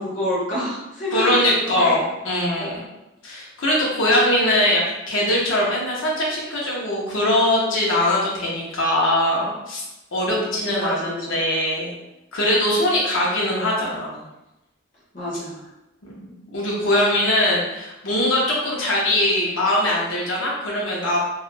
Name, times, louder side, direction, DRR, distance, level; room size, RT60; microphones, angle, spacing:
voice 1, 0.0-1.4 1.6-2.0 2.6-2.7 10.2-11.4 15.1-15.7, left 1 dB, 40° left, -7 dB, 0.6 m, -28 dB
voice 2, 1.1-2.8 3.2-9.8 10.1-11.9 12.3-14.2 16.0-21.2, left 1 dB, 80° left, -4 dB, 0.6 m, -21 dB
2.3 x 2.1 x 3.1 m, 0.94 s
head